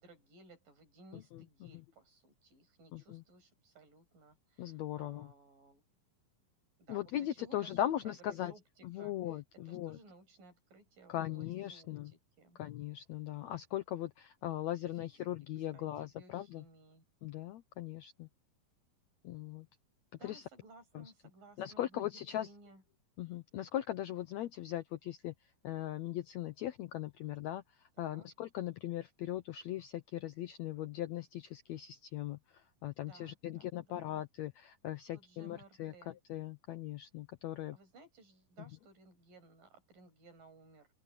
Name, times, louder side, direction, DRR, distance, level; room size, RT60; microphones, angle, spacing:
voice 1, 0.0-5.8 6.8-9.4 9.7-12.6 14.9-15.3 15.7-17.0 20.1-22.1 22.4-22.8 28.0-28.3 33.0-34.0 35.1-36.2 37.7-40.9, right 3 dB, 70° right, 8.2 m, -59 dB
voice 2, 1.1-1.4 2.9-3.2 4.6-5.3 6.9-8.5 8.8-10.0 11.1-12.1 12.6-16.6 17.2-18.3 19.2-19.7 20.2-20.4 20.9-21.1 21.6-22.5 23.2-25.3 25.6-37.8, left 12 dB, 80° left, 1.6 m, -39 dB
open air
omnidirectional pair, 4.0 m